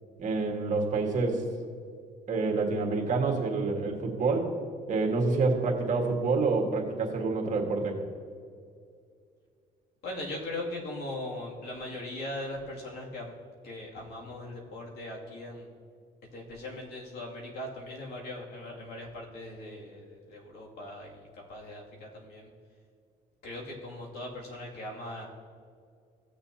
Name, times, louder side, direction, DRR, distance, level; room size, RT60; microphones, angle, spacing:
voice 1, 0.2-1.4 2.3-4.5 4.9-8.0, right 3 dB, 45° right, 1 dB, 1.7 m, -27 dB
voice 2, 10.0-13.3 13.6-15.7 16.3-22.5 23.4-25.3, left 1 dB, 70° left, -2 dB, 2.5 m, -40 dB
16.5 x 6.8 x 2.8 m, 2.3 s
cardioid pair, 110°, 17 cm